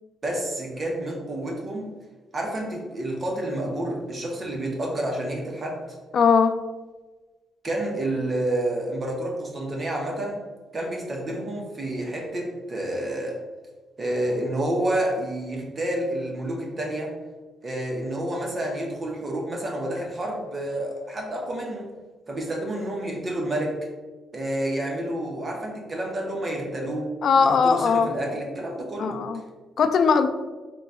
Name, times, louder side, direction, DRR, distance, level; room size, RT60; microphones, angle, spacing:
voice 1, 0.2-1.9 2.3-5.8 7.6-10.4 10.7-13.4 14.0-17.2 17.6-21.9 22.3-23.8 24.3-29.2, right 1 dB, 30° right, -1 dB, 0.8 m, -29 dB
voice 2, 6.1-6.6 27.2-28.1 29.0-29.4 29.8-30.3, left 5 dB, 55° left, 9 dB, 0.3 m, -19 dB
3.8 x 2.3 x 4.1 m, 1.3 s
cardioid pair, 130°, 0 cm